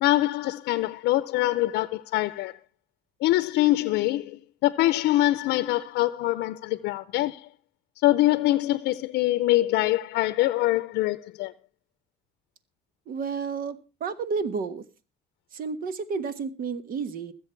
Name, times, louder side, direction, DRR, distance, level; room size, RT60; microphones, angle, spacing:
voice 1, 0.0-2.5 3.2-7.5 8.0-11.5, left 16 dB, 80° left, 0.6 m, -24 dB
voice 2, 13.1-14.8 15.5-17.3, right 5 dB, 60° right, 1.4 m, -31 dB
20.5 x 7.7 x 4.5 m
cardioid pair, 110°, 17 cm